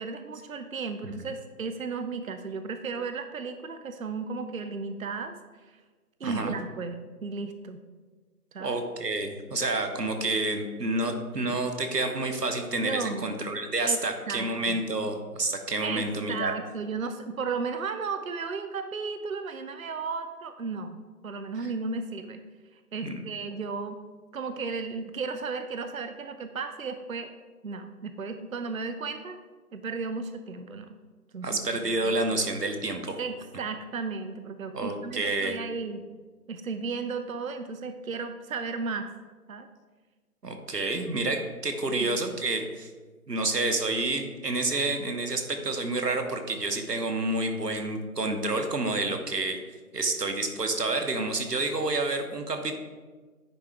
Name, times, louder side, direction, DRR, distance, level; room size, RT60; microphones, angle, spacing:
voice 1, 0.0-5.3 6.2-7.8 8.5-8.8 12.8-13.3 13.8-14.0 14.3-14.8 15.8-21.0 21.2-22.4 22.9-24.0 24.3-27.3 27.6-29.4 29.7-31.0 31.3-31.6 32.0-32.1 33.2-36.0 36.5-39.1 39.5-39.7 40.7-40.9 41.9-42.2, right 4 dB, 60° right, 9 dB, 0.5 m, -34 dB
voice 2, 6.2-6.5 8.6-16.5 23.0-23.2 31.4-33.2 34.7-35.6 40.4-42.9 43.3-49.6 49.9-52.7, right 2 dB, 80° right, 6 dB, 1.1 m, -29 dB
9.9 x 3.8 x 3.4 m, 1.4 s
figure-of-eight pair, 155°, 47 cm